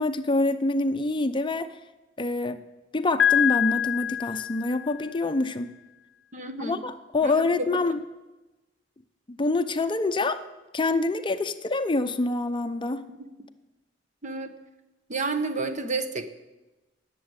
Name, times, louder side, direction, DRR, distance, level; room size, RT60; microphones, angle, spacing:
voice 1, 0.0-1.7 2.2-2.6 2.9-5.7 6.6-8.0 9.3-10.4 10.7-13.0, left 2 dB, 25° left, 9 dB, 0.6 m, -26 dB
Piano, 3.2-5.1, left 10 dB, 75° left, 0.5 m, -25 dB
voice 2, 6.3-6.8 7.2-7.3 7.6-7.7 13.2-13.3 14.2-14.5 15.1-16.3, right 3 dB, 40° right, 9 dB, 1.2 m, -30 dB
19.0 x 7.6 x 8.0 m, 1.1 s
head